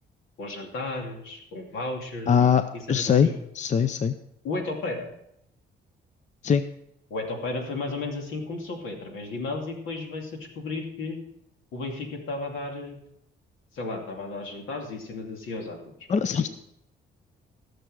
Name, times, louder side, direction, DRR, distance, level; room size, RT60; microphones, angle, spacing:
voice 1, 0.4-3.3 4.4-5.1 7.1-11.2 11.7-13.0 13.7-15.8 16.4-16.5, left 2 dB, 80° left, 2 dB, 2.6 m, -34 dB
voice 2, 2.3-3.3 3.6-4.1 6.4-6.7 16.1-16.5, left 7 dB, 40° left, 12 dB, 0.6 m, -22 dB
16.5 x 6.8 x 4.8 m, 0.76 s
cardioid pair, 90°, 20 cm